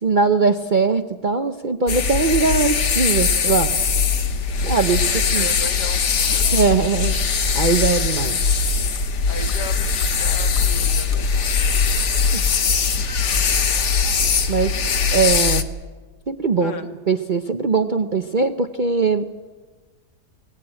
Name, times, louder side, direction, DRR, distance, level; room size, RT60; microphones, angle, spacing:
voice 1, 0.0-3.7 4.6-5.0 5.3-5.5 6.5-7.2 7.5-8.4 12.3-12.4 14.5-14.7 15.1-15.6 16.3-19.3, right 4 dB, 45° right, 8 dB, 0.7 m, -20 dB
sound 1, 1.9-15.6, left 5 dB, 50° left, 1.3 m, -20 dB
voice 2, 5.1-6.7 9.3-11.3 13.2-13.5 14.5-14.7 16.6-16.9, left 4 dB, 75° left, 6 dB, 2.3 m, -36 dB
sound 2, 5.2-5.3 5.6-6.1 6.6-6.7 7.0-7.1 7.5-7.6 7.9-8.0 8.4-8.5 8.9-9.0 9.4-10.1 10.5-10.6 10.9-11.2, left 2 dB, 20° left, 1.2 m, -41 dB
22.5 x 19.5 x 8.8 m, 1.3 s
omnidirectional pair, 1.8 m